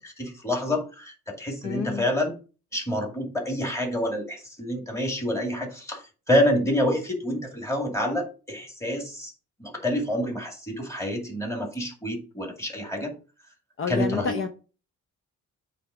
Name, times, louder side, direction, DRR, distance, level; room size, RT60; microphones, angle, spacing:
voice 1, 0.0-2.3 2.7-9.3 9.6-13.1 13.9-14.4, left 1 dB, 10° left, 1 dB, 2.3 m, -27 dB
voice 2, 1.6-2.1 13.8-14.5, left 5 dB, 40° left, 6 dB, 0.7 m, -28 dB
8.4 x 3.5 x 5.0 m, 0.36 s
cardioid pair, 125°, 31 cm